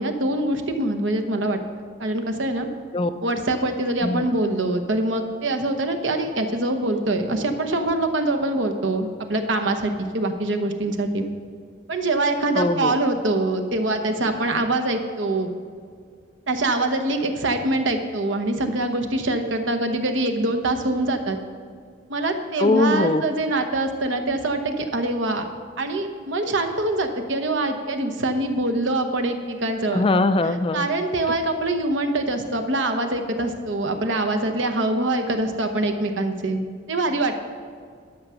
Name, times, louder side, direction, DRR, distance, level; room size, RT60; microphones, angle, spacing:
voice 1, 0.0-1.6 2.0-2.7 3.2-11.2 11.9-15.5 16.5-21.4 22.1-25.5 25.8-30.0 30.7-37.4, right 2 dB, 65° right, 6 dB, 1.0 m, -24 dB
voice 2, 12.6-12.9 22.6-23.2 29.9-30.9, left 2 dB, 25° left, 11 dB, 0.3 m, -21 dB
11.5 x 6.2 x 5.7 m, 2.1 s
head